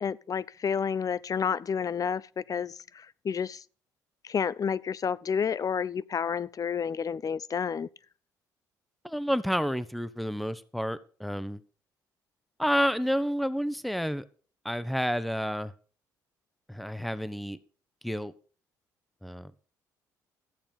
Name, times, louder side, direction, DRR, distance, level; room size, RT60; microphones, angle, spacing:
voice 1, 0.0-3.6 4.2-7.9, left 7 dB, 40° left, 0.6 m, -30 dB
voice 2, 9.0-11.6 12.6-14.2 14.6-15.7 16.7-17.6 18.0-18.3 19.2-19.5, equal, ahead, 1.0 m, -30 dB
14.0 x 8.7 x 5.3 m
hypercardioid pair, 55°, 9 cm